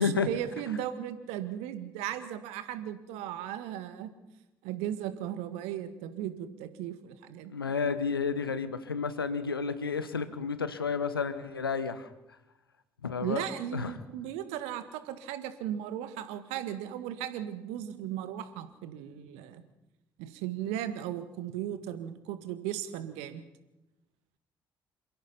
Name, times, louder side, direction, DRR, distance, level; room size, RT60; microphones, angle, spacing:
voice 1, 0.0-4.1 4.6-7.5 13.2-19.6 20.2-23.4, right 11 dB, 65° right, 11 dB, 1.8 m, -36 dB
voice 2, 7.5-12.1 13.0-13.4 13.7-13.9, left 5 dB, 85° left, 13 dB, 1.1 m, -31 dB
27.5 x 16.0 x 5.8 m, 0.94 s
figure-of-eight pair, 45°, 12 cm